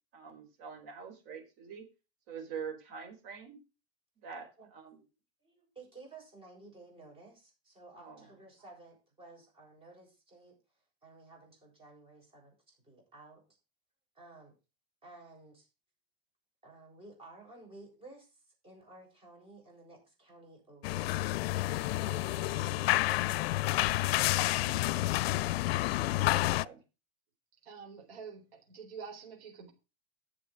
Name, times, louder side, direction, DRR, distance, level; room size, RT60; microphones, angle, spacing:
voice 1, 0.1-1.8 2.3-3.6 4.2-5.0 8.0-8.3 26.0-26.8, right 6 dB, 50° right, 4.9 m, -45 dB
voice 2, 4.6-5.0 5.4-10.6 11.0-13.6 14.1-14.6 15.0-15.7 16.6-21.1 21.6-25.3, right 2 dB, 15° right, 7.2 m, -55 dB
sound 1, 20.8-26.7, left 17 dB, 75° left, 0.5 m, -29 dB
voice 3, 27.6-29.7, right 6 dB, 80° right, 4.4 m, -47 dB
10.5 x 7.0 x 6.2 m
supercardioid pair, 145°, 31 cm